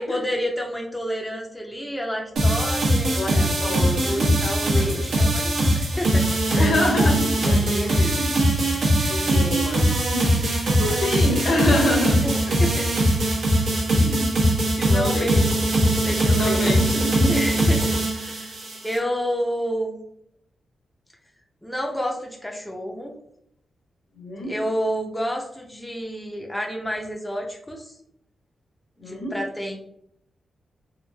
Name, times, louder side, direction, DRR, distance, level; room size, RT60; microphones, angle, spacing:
voice 1, 0.0-6.4 7.5-8.3 10.8-11.1 12.2-12.9 14.1-16.7 17.3-18.5 18.8-20.0 21.6-23.1 24.5-27.9 29.0-29.8, equal, 5° left, 0 dB, 0.4 m, -30 dB
sound 1, 2.4-19.0, right 1 dB, 85° right, 0.8 m, -21 dB
voice 2, 3.1-4.3 4.7-5.1 6.6-7.6 7.8-9.8 10.1-10.3 10.8-12.2 13.9-14.4 14.9-15.3 16.3-17.4 24.2-24.5 29.0-29.3, left 1 dB, 70° left, 1 dB, 0.8 m, -26 dB
3.0 x 2.4 x 2.2 m, 0.74 s
wide cardioid pair, 105°, 0 cm